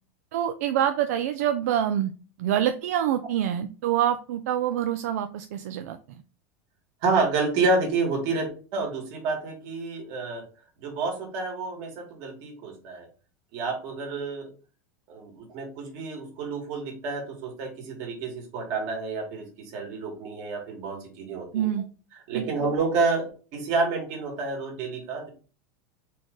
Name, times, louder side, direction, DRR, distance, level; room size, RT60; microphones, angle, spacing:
voice 1, 0.3-2.1 2.4-6.2 21.5-21.8 22.3-22.5, right 10 dB, 75° right, 8 dB, 0.4 m, -26 dB
voice 2, 7.0-10.5 10.8-13.1 13.5-14.5 15.1-21.7 22.3-25.3, right 3 dB, 50° right, 2 dB, 1.8 m, -29 dB
4.2 x 3.2 x 3.7 m, 0.35 s
supercardioid pair, 155°, 8 cm